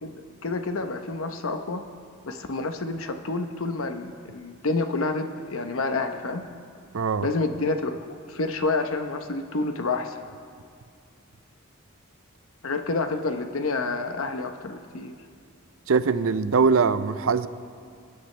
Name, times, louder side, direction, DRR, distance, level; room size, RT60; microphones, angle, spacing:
voice 1, 0.0-1.8 2.2-6.4 7.2-10.2 12.6-15.1, left 3 dB, 75° left, 7 dB, 0.9 m, -29 dB
voice 2, 6.9-7.3 15.9-17.5, right 5 dB, 75° right, 13 dB, 0.5 m, -22 dB
25.5 x 10.0 x 3.3 m, 2.2 s
head